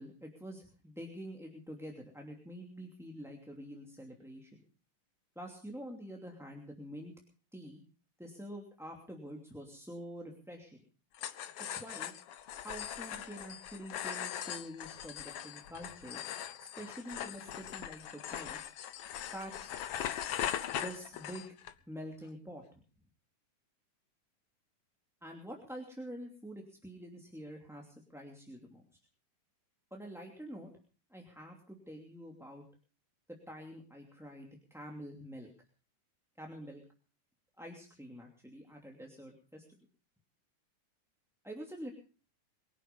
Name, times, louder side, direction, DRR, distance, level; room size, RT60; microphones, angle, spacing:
voice 1, 0.0-4.6 5.4-7.1 7.5-7.8 8.2-10.8 11.7-12.1 12.6-16.3 16.6-18.6 19.3-19.7 20.7-21.5 21.9-22.6 25.2-28.8 29.9-30.7 31.1-32.6 33.3-35.5 36.4-36.8 37.6-39.9 41.4-41.9, equal, ahead, 0 dB, 2.2 m, -47 dB
sound 1, 11.1-21.7, left 10 dB, 70° left, 1.4 m, -40 dB
23.0 x 11.0 x 5.4 m, 0.40 s
omnidirectional pair, 3.7 m